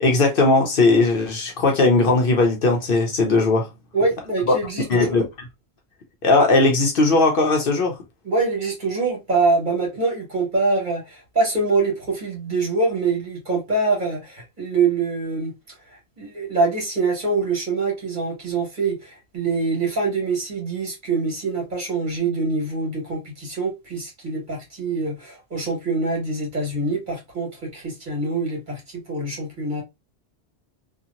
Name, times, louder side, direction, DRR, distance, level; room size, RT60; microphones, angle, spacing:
voice 1, 0.0-3.7 4.5-4.6 4.9-5.2 6.2-7.9, left 3 dB, 60° left, 0.8 m, -18 dB
voice 2, 3.9-5.2 8.2-15.5 15.9-29.8, right 3 dB, 45° right, 1.5 m, -24 dB
2.8 x 2.4 x 2.4 m
omnidirectional pair, 1.1 m